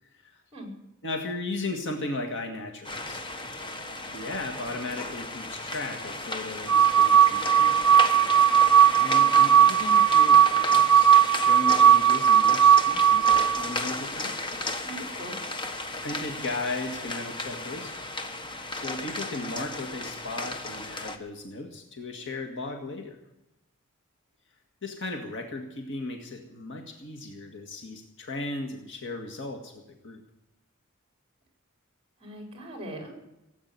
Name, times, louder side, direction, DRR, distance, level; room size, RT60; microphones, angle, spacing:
voice 1, 1.0-3.2 4.1-8.1 9.0-14.4 16.0-17.9 18.7-23.2 24.8-30.2, left 2 dB, 60° left, 3 dB, 1.9 m, -36 dB
sound 1, 2.8-21.2, left 2 dB, 25° left, 1.3 m, -34 dB
sound 2, 6.7-13.7, right 8 dB, 70° right, 1.1 m, -18 dB
voice 2, 14.8-15.4 32.2-33.2, right 1 dB, 25° right, 2 dB, 4.8 m, -40 dB
17.0 x 8.6 x 9.5 m, 0.90 s
head